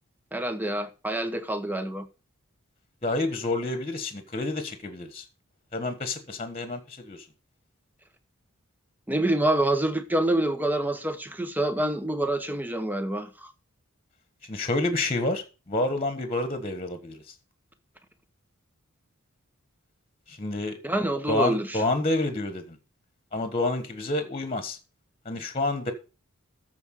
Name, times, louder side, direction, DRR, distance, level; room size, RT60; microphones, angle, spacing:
voice 1, 0.3-2.1 9.1-13.5 20.8-21.8, right 1 dB, 10° right, 1.0 m, -27 dB
voice 2, 3.0-5.2 5.7-7.2 14.5-17.2 20.3-20.8 21.3-22.8 23.3-24.8 25.2-25.9, left 2 dB, 30° left, 1.4 m, -29 dB
13.5 x 4.7 x 6.5 m
head